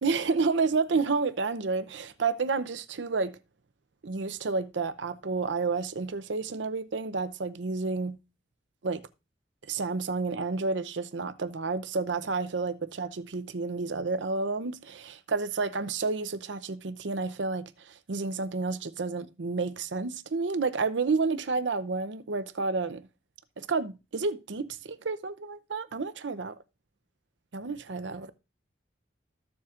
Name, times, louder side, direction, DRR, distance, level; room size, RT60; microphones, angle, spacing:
voice 1, 0.0-3.4 4.0-8.2 8.8-9.1 9.7-23.1 23.6-26.5 27.5-28.3, right 4 dB, 80° right, 0.6 m, -30 dB
14.0 x 7.0 x 2.5 m
head